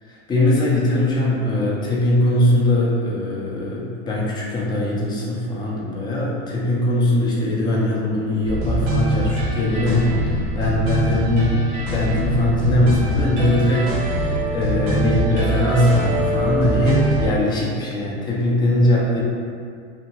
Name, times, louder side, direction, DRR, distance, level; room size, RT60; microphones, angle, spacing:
voice 1, 0.3-19.2, left 1 dB, 15° left, -5 dB, 0.4 m, -21 dB
sound 1, 8.4-17.3, right 1 dB, 45° right, 0.7 m, -23 dB
2.8 x 2.2 x 2.8 m, 2.3 s
supercardioid pair, 125°, 33 cm